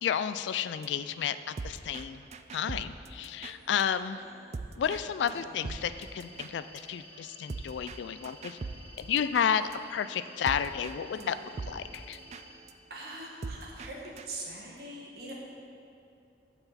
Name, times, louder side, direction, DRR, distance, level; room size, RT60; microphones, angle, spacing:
voice 1, 0.0-2.2 2.5-4.2 4.8-8.6 9.0-11.4 11.7-12.2, left 8 dB, 80° left, 13 dB, 0.3 m, -31 dB
sound 1, 0.6-3.8 4.2-5.0 5.3-5.4 5.6-10.9 11.2-11.3 11.5-14.3, right 3 dB, 35° right, 0.3 m, -43 dB
sound 2, 5.7-12.5, equal, 5° right, 2.1 m, -52 dB
voice 2, 12.9-14.0 14.3-15.3, right 2 dB, 55° right, -3 dB, 1.8 m, -42 dB
14.5 x 6.0 x 4.2 m, 2.6 s
head